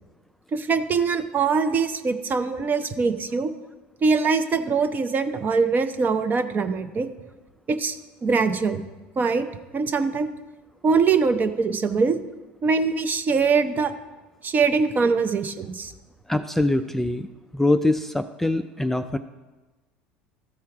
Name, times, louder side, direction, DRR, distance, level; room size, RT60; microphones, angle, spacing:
voice 1, 0.5-3.5 4.0-7.1 7.7-8.0 8.2-8.8 9.2-9.5 9.7-10.3 10.8-12.2 12.6-13.9 14.4-15.9, right 5 dB, 35° right, 10 dB, 0.7 m, -22 dB
voice 2, 16.3-17.3 17.5-19.2, left 2 dB, 5° left, 8 dB, 0.3 m, -23 dB
13.0 x 4.4 x 4.8 m, 1.2 s
hypercardioid pair, 80°, 6 cm